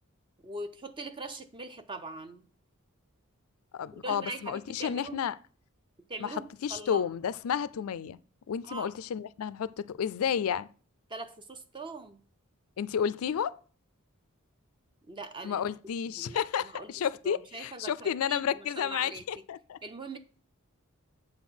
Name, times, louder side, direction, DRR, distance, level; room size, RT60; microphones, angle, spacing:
voice 1, 0.4-2.4 3.9-5.2 6.1-7.0 8.6-8.9 11.1-12.2 15.1-15.7 16.1-16.9 17.2-19.2 19.8-20.2, right 2 dB, 25° right, 0.6 m, -42 dB
voice 2, 3.7-5.4 6.2-8.2 8.5-10.7 12.8-13.6 15.4-19.8, left 8 dB, 75° left, 0.4 m, -31 dB
7.7 x 4.4 x 5.7 m
head